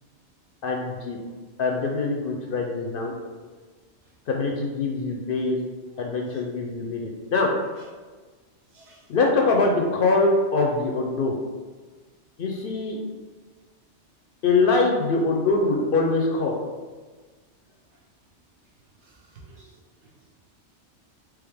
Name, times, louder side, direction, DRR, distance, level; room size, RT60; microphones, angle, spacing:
voice 1, 0.6-1.2 1.6-3.1 4.3-5.6 6.0-7.5 9.1-11.4 12.4-13.0 14.4-16.6, left 3 dB, 60° left, 0 dB, 0.6 m, -23 dB
voice 2, 19.0-19.8, right 3 dB, 70° right, -3 dB, 1.2 m, -51 dB
3.5 x 3.1 x 3.4 m, 1.4 s
omnidirectional pair, 1.2 m